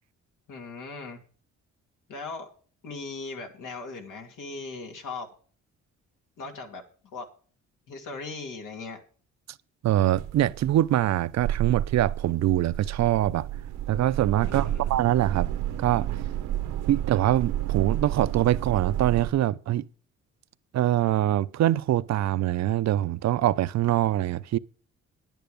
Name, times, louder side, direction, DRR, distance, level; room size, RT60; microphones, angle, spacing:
voice 1, 0.5-1.2 2.1-2.5 2.8-5.3 6.4-6.8 7.1-7.3 7.9-9.0 14.4-14.9, left 3 dB, 85° left, 2.8 m, -38 dB
voice 2, 9.8-13.5 13.9-15.5 15.8-16.1 16.9-19.8 20.7-24.6, right 13 dB, 60° right, 0.6 m, -24 dB
sound 1, 10.2-19.3, right 12 dB, 90° right, 1.2 m, -31 dB
10.5 x 9.2 x 5.2 m
cardioid pair, 90°, 30 cm